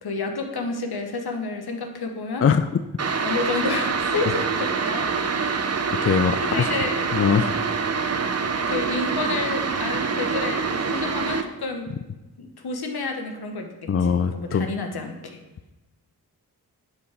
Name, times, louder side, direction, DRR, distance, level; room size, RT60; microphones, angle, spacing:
voice 1, 0.0-2.4 3.2-5.2 6.4-7.3 8.7-11.9 12.4-15.4, left 3 dB, 70° left, 4 dB, 1.2 m, -30 dB
sound 1, 3.0-11.4, right 5 dB, 40° right, 0.7 m, -25 dB
voice 2, 6.0-6.7 7.1-7.6 13.9-14.7, left 6 dB, 35° left, 9 dB, 0.5 m, -21 dB
9.8 x 5.5 x 3.5 m, 1.1 s
cardioid pair, 40°, 40 cm